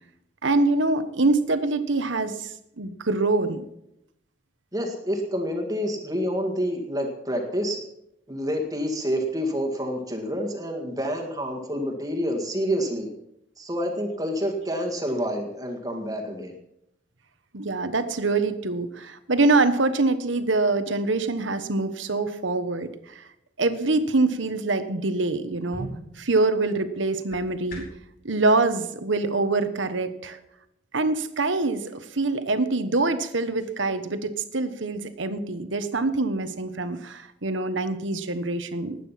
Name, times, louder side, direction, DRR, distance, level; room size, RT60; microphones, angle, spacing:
voice 1, 0.4-3.6 17.5-23.2 23.6-25.9 26.2-27.9 28.2-30.4 30.9-39.0, right 3 dB, 80° right, 10 dB, 1.3 m, -25 dB
voice 2, 4.7-7.8 8.3-13.1 13.6-16.6, equal, 20° right, 2 dB, 2.0 m, -28 dB
sound 1, 25.6-28.1, right 1 dB, 45° left, 5.0 m, -42 dB
20.0 x 9.2 x 5.9 m, 0.81 s
head